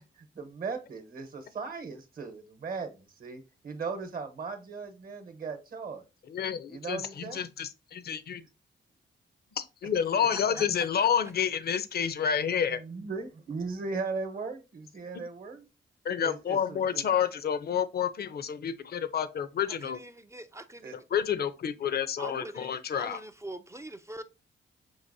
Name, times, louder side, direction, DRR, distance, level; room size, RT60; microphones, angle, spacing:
voice 1, 0.0-6.0 6.7-7.4 8.0-8.2 10.1-10.3 10.6-10.7 12.5-15.6 16.2-17.0 20.8-20.9, right 4 dB, 50° right, 0.9 m, -38 dB
voice 2, 6.3-8.4 9.6-12.8 16.0-20.0 21.1-23.2, left 8 dB, 55° left, 0.5 m, -29 dB
voice 3, 10.3-10.9 19.7-21.0 22.2-24.2, right 1 dB, 15° right, 0.3 m, -43 dB
5.5 x 2.9 x 2.6 m
cardioid pair, 75°, 19 cm